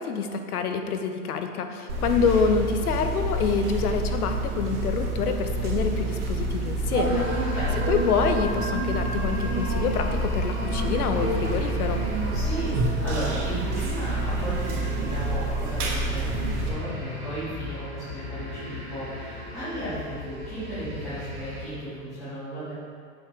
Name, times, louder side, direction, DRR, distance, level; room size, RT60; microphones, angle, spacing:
voice 1, 0.0-7.3 7.9-12.1, left 5 dB, 75° left, 6 dB, 1.1 m, -27 dB
sound 1, 1.9-16.7, right 2 dB, 90° right, 2.5 m, -28 dB
sound 2, 7.0-21.6, left 2 dB, 25° right, 2.3 m, -37 dB
voice 2, 7.3-7.8 12.3-22.7, right 1 dB, ahead, -31 dB, 0.4 m, -35 dB
7.6 x 5.7 x 6.8 m, 2.4 s
supercardioid pair, 175°, 44 cm